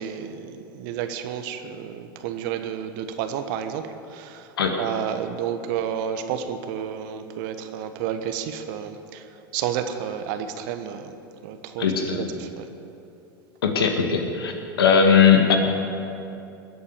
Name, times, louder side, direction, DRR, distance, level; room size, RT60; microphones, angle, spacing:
voice 1, 0.0-4.5 4.8-9.3 9.5-11.1 11.4-12.7, right 8 dB, 60° right, 8 dB, 1.3 m, -31 dB
voice 2, 11.8-12.2 13.6-14.5 14.8-15.6, left 6 dB, 80° left, 4 dB, 1.9 m, -18 dB
20.0 x 8.6 x 6.9 m, 2.8 s
hypercardioid pair, 90°, 12 cm